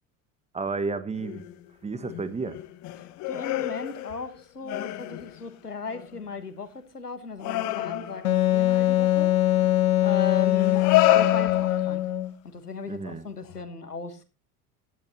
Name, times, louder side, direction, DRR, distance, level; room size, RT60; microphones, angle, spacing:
voice 1, 0.5-1.4 1.8-2.6 12.9-13.3, right 4 dB, 15° right, 14 dB, 1.1 m, -31 dB
sound 1, 1.1-1.7 2.0-4.4 4.6-5.4 5.8-6.2 7.4-8.4 9.6-9.7 10.6-12.1 13.4-13.5, left 16 dB, 40° left, 1.2 m, -28 dB
voice 2, 3.3-9.3 10.0-12.0 12.5-14.3, left 5 dB, 85° left, 10 dB, 1.4 m, -36 dB
Wind instrument woodwind instrument, 8.2-12.3, left 13 dB, 65° left, 1.4 m, -22 dB
15.5 x 11.0 x 2.9 m, 0.29 s
figure-of-eight pair, 75°, 45 cm